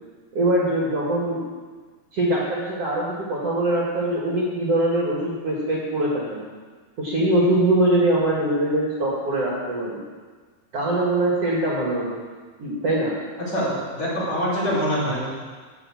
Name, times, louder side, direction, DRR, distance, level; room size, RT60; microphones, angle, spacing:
voice 1, 0.3-1.4 2.1-6.4 7.0-10.0 10.7-12.2 12.6-13.2, right 1 dB, 45° right, -4 dB, 2.7 m, -22 dB
voice 2, 13.5-15.3, equal, 40° left, -8 dB, 6.1 m, -24 dB
14.0 x 6.8 x 8.7 m, 1.5 s
omnidirectional pair, 4.4 m